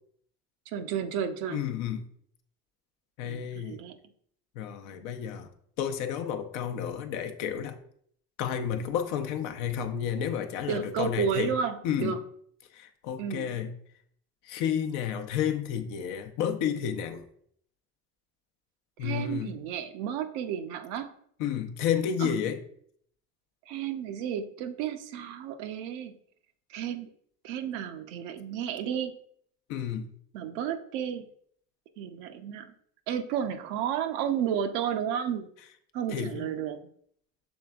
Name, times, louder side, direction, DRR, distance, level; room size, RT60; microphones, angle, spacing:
voice 1, 0.7-1.7 3.3-4.0 10.7-12.2 13.2-13.6 19.0-21.1 22.2-22.3 23.7-26.2 26.7-27.1 27.4-29.2 30.3-31.3 32.0-32.7 33.1-35.5 35.9-36.8, right 8 dB, 85° right, 8 dB, 0.5 m, -32 dB
voice 2, 1.5-2.0 3.2-3.8 4.6-5.5 5.8-7.8 8.4-11.5 11.8-12.1 12.7-13.7 14.4-17.2 19.0-19.6 21.4-22.6 29.7-30.1 36.1-36.5, left 8 dB, 80° left, 6 dB, 0.6 m, -31 dB
6.2 x 3.3 x 2.3 m, 0.64 s
supercardioid pair, 75°, 30 cm